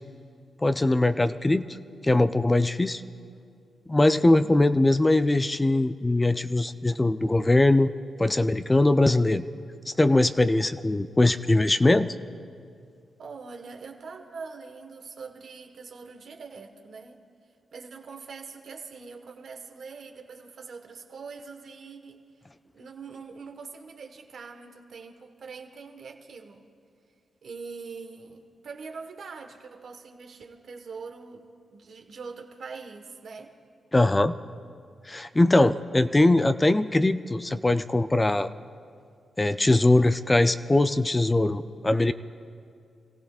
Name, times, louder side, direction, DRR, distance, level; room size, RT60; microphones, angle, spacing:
voice 1, 0.6-1.7 2.0-3.0 3.9-7.9 8.2-9.4 10.0-12.1 33.9-34.3 35.1-38.5 39.4-42.1, left 2 dB, 20° left, 11 dB, 0.5 m, -21 dB
voice 2, 4.2-4.6 13.2-17.2 17.7-22.2 22.7-26.6 27.4-33.5, right 4 dB, 70° right, 4 dB, 1.3 m, -43 dB
28.0 x 16.0 x 2.4 m, 2.3 s
cardioid pair, 60°, 0 cm